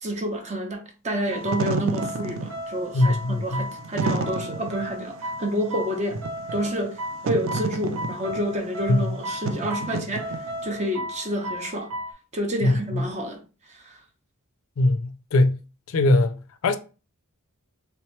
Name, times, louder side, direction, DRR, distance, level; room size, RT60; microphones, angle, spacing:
voice 1, 0.0-6.2 6.5-11.9 12.3-13.4 13.7-14.0, equal, 30° right, 0.7 m, -29 dB
Wind / Fire, 1.3-10.8, right 3 dB, 60° right, 0.4 m, -31 dB
sound 1, 1.3-12.1, equal, 90° right, 0.7 m, -35 dB
voice 2, 2.9-3.7 8.9-9.0 12.6-13.0 14.8-15.6 15.9-16.8, left 2 dB, 65° left, 0.4 m, -21 dB
3.4 x 2.9 x 3.1 m
head